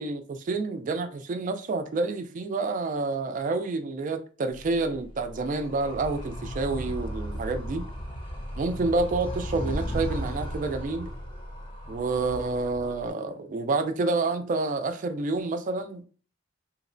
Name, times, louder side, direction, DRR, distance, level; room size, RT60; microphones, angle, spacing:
voice 1, 0.0-7.9 8.6-11.1 11.9-16.1, right 3 dB, 45° right, 0.3 m, -28 dB
Animal, 4.5-13.1, equal, 30° left, 0.6 m, -36 dB
2.8 x 2.0 x 2.5 m
head